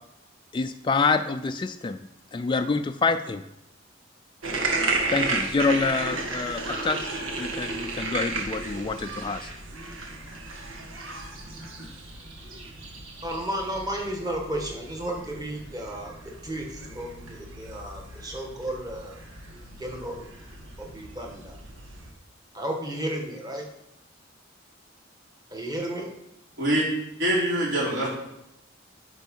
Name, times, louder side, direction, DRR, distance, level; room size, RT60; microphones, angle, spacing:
voice 1, 0.5-2.0 2.3-3.4 5.1-9.5, left 4 dB, 25° left, 7 dB, 0.3 m, -27 dB
sound 1, 4.4-22.1, right 3 dB, 90° right, 1.7 m, -34 dB
voice 2, 13.2-19.2 19.8-20.3 20.8-21.6 22.5-23.7 25.5-26.1, right 1 dB, 20° right, 1 dB, 1.6 m, -33 dB
voice 3, 27.2-28.1, right 1 dB, 60° right, -5 dB, 3.9 m, -24 dB
10.5 x 5.3 x 5.4 m, 0.85 s
head